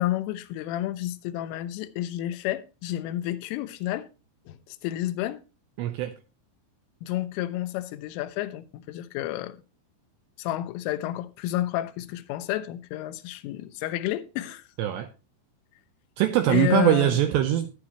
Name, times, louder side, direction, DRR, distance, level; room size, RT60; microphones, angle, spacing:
voice 1, 0.0-4.1 4.5-5.4 7.0-9.6 10.4-14.6 16.5-17.2, left 14 dB, 90° left, 3.2 m, -30 dB
voice 2, 5.8-6.1 14.8-15.1 16.2-17.7, right 12 dB, 85° right, 2.5 m, -22 dB
11.5 x 10.5 x 2.9 m
omnidirectional pair, 5.7 m